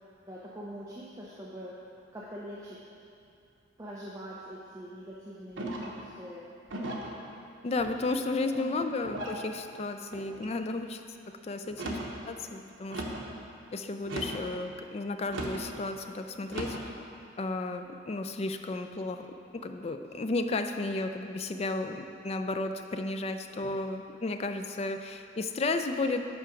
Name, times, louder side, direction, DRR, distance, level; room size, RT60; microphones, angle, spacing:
voice 1, 0.3-1.7 2.1-2.8 3.8-6.5 8.5-8.9, equal, 15° right, -6 dB, 0.6 m, -43 dB
sound 1, 5.6-6.0 6.7-7.2 7.8-8.3 9.0-9.4 10.1-10.5 11.7-12.1 12.9-13.3 14.0-14.5 15.3-15.7 16.5-16.9, right 1 dB, 80° right, 0.9 m, -37 dB
voice 2, 7.6-11.0 11.4-12.0 12.3-13.0 13.7-16.9 17.4-19.3 19.5-26.3, left 2 dB, 35° left, 7 dB, 0.3 m, -33 dB
8.1 x 4.9 x 5.0 m, 2.6 s
head